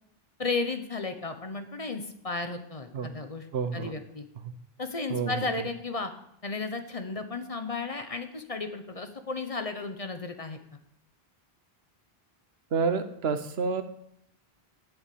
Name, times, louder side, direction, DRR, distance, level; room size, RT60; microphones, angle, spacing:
voice 1, 0.4-3.4 3.7-4.3 4.8-6.1 6.4-10.8, left 3 dB, 35° left, 7 dB, 1.0 m, -34 dB
voice 2, 3.5-3.9 4.4-4.5 5.1-5.7 12.7-13.8, right 5 dB, 80° right, 10 dB, 1.2 m, -29 dB
8.1 x 7.2 x 8.4 m, 0.73 s
omnidirectional pair, 1.0 m